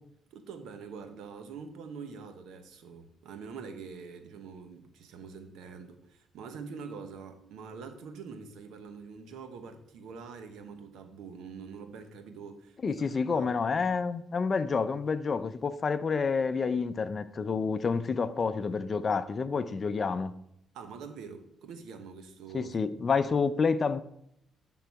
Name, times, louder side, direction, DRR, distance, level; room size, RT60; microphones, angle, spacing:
voice 1, 0.3-13.5 20.7-22.8, right 5 dB, 85° right, 1.0 m, -45 dB
voice 2, 12.8-20.3 22.5-24.0, left 5 dB, 40° left, 0.5 m, -29 dB
11.0 x 3.9 x 4.7 m
cardioid pair, 90°, 0 cm